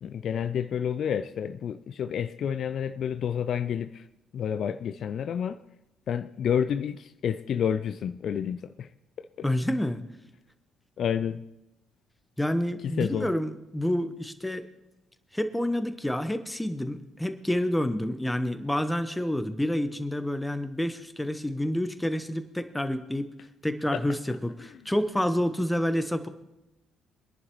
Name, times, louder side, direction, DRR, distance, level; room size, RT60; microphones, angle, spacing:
voice 1, 0.0-4.0 4.3-5.6 6.1-8.9 11.0-11.4 12.8-13.3 23.9-24.0, left 8 dB, 55° left, 0.4 m, -29 dB
voice 2, 9.4-10.0 12.4-14.6 15.3-23.3 23.6-26.3, left 1 dB, 5° left, 1.1 m, -28 dB
23.0 x 11.0 x 3.1 m
hypercardioid pair, 50°, 0 cm